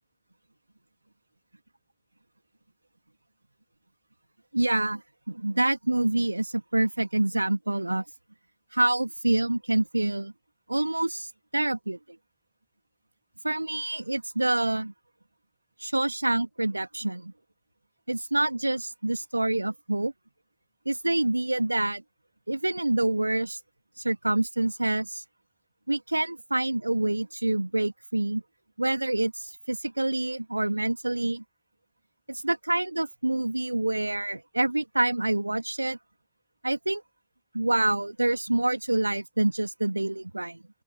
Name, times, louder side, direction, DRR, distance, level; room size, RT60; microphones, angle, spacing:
voice 1, 4.5-5.0 5.3-8.0 8.7-10.3 10.7-12.0 13.4-14.9 15.8-17.3 18.1-20.1 20.9-22.0 22.5-23.6 24.0-25.2 25.9-28.4 28.8-31.4 32.3-36.0 36.6-37.0 37.5-40.6, right 2 dB, 90° right, 2.5 m, -27 dB
open air
figure-of-eight pair, 60°, 0 cm